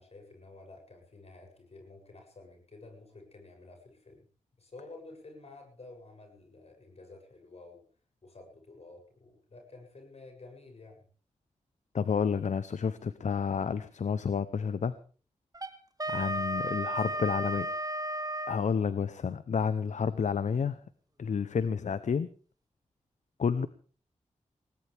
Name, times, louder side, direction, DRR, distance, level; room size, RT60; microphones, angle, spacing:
voice 1, 0.0-4.3 4.6-7.8 8.2-11.1 16.1-17.5, left 3 dB, 55° left, 3 dB, 7.8 m, -51 dB
voice 2, 11.9-14.9 16.1-17.7 18.5-20.8 21.2-22.3 23.4-23.7, left 6 dB, 70° left, 14 dB, 0.8 m, -30 dB
Wind instrument woodwind instrument, 15.5-18.6, right 1 dB, 30° right, 1.9 m, -33 dB
20.5 x 19.0 x 3.5 m, 0.39 s
cardioid pair, 60°, 13 cm